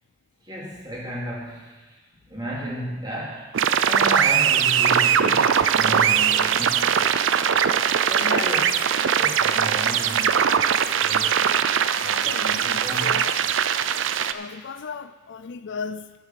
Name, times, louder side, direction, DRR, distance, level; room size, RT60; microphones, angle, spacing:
voice 1, 0.4-2.0 2.3-3.5 3.8-7.1 8.0-8.8 9.1-11.4 12.0-13.2, equal, 20° right, -4 dB, 3.1 m, -34 dB
sound 1, 3.5-14.3, right 8 dB, 75° right, 0.5 m, -21 dB
voice 2, 8.2-8.7 11.9-13.4 14.3-16.1, left 5 dB, 65° left, 12 dB, 0.5 m, -35 dB
10.0 x 8.3 x 7.5 m, 1.3 s
head